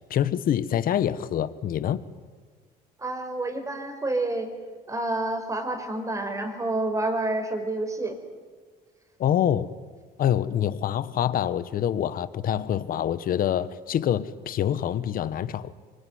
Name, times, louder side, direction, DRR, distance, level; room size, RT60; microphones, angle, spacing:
voice 1, 0.1-2.0 9.2-9.7 10.2-15.7, left 10 dB, 55° left, 1.3 m, -26 dB
voice 2, 3.0-4.5 4.9-8.1, right 2 dB, 20° right, 5.0 m, -28 dB
25.0 x 24.5 x 9.5 m
cardioid pair, 110°, 17 cm